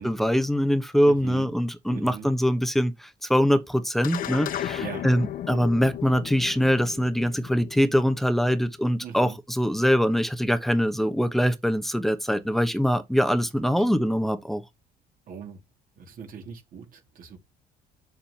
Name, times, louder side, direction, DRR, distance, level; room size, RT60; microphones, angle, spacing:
voice 1, 0.0-14.6, equal, ahead, 1.0 m, -23 dB
voice 2, 1.0-1.5 1.9-2.3 4.8-5.1 9.0-9.4 13.8-13.9 15.3-15.6 16.0-17.4, right 7 dB, 55° right, 2.1 m, -40 dB
sound 1, 4.0-8.7, left 11 dB, 55° left, 0.7 m, -35 dB
7.2 x 7.1 x 2.8 m
cardioid pair, 110°, 17 cm